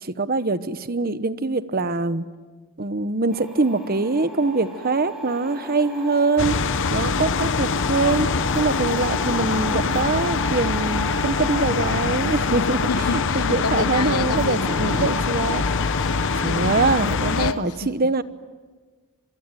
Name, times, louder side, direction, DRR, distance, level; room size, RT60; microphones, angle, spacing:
voice 1, 0.0-2.2 2.8-8.3 8.5-15.6 16.4-18.2, right 3 dB, 40° right, 1.0 m, -23 dB
sound 1, 3.3-17.6, equal, ahead, 7.1 m, -35 dB
sound 2, 6.4-17.5, left 5 dB, 55° left, 0.7 m, -24 dB
voice 2, 12.9-15.2 15.7-17.0 17.4-18.1, left 4 dB, 85° left, 1.0 m, -30 dB
26.5 x 22.5 x 9.2 m
head